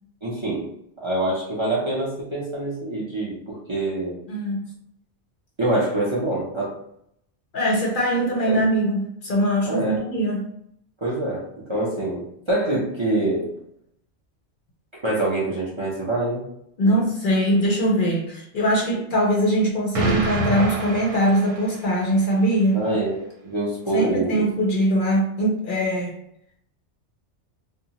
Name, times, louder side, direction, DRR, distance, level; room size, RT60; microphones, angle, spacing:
voice 1, 0.2-0.7 1.0-4.2 5.6-6.7 8.5-8.7 9.6-10.0 11.0-13.5 15.0-16.4 16.8-17.0 22.7-24.4, right 2 dB, 35° right, -6 dB, 0.5 m, -25 dB
voice 2, 4.3-4.6 7.5-10.5 16.8-22.8 23.9-26.2, equal, 55° left, -2 dB, 0.6 m, -22 dB
Explosion, 19.9-22.1, right 2 dB, 85° right, 0.9 m, -27 dB
2.7 x 2.2 x 2.8 m, 0.73 s
omnidirectional pair, 1.2 m